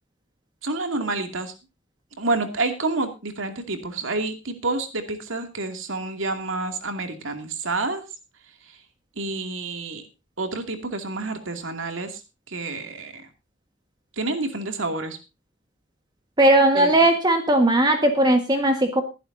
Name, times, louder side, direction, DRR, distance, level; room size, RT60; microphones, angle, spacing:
voice 1, 0.6-1.5 2.2-8.0 8.7-8.8 9.2-10.0 10.4-12.2 12.5-13.3 14.2-15.2 16.7-16.9, right 3 dB, 75° right, 6 dB, 2.5 m, -28 dB
voice 2, 16.4-19.0, right 1 dB, 20° right, 5 dB, 1.5 m, -18 dB
20.5 x 11.0 x 2.7 m, 0.28 s
head